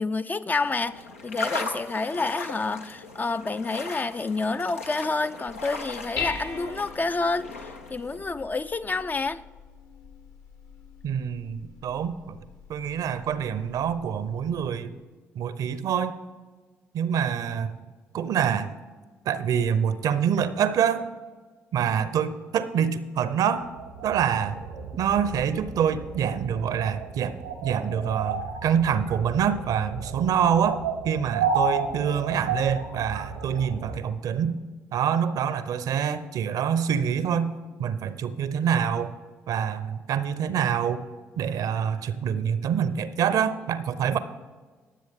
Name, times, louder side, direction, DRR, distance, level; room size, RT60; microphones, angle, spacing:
voice 1, 0.0-9.4, left 3 dB, 25° left, 12 dB, 0.4 m, -29 dB
sound 1, 0.6-8.2, left 3 dB, 85° left, 0.7 m, -38 dB
Dishes pots and pans, 5.5-14.7, left 5 dB, 55° left, 1.2 m, -41 dB
voice 2, 11.0-12.4 12.7-15.0 15.3-16.2 16.9-17.8 18.1-18.7 19.3-21.0 21.7-23.7 24.0-24.6 25.0-27.4 27.6-34.6 34.9-37.5 37.8-39.1 39.5-41.0 41.4-44.2, right 8 dB, 60° right, 14 dB, 0.7 m, -26 dB
sound 2, 23.6-34.0, right 5 dB, 90° right, 1.1 m, -32 dB
20.0 x 7.6 x 3.6 m, 1.4 s
figure-of-eight pair, 40°, 7 cm